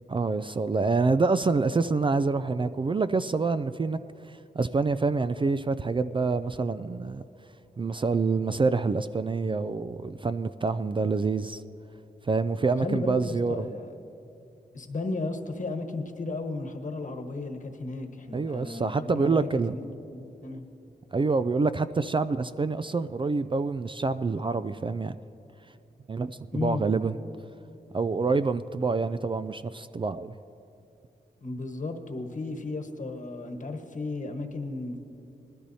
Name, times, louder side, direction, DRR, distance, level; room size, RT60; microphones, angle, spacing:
voice 1, 0.1-4.0 4.2-7.2 7.8-11.6 12.2-13.7 18.3-19.8 21.1-25.2 26.1-27.2 27.9-30.3, right 4 dB, 30° right, 12 dB, 0.3 m, -27 dB
voice 2, 12.8-13.9 14.7-20.6 26.5-26.8 31.4-35.0, left 3 dB, 50° left, 4 dB, 1.3 m, -34 dB
20.0 x 13.5 x 2.8 m, 2.7 s
cardioid pair, 60°, 17 cm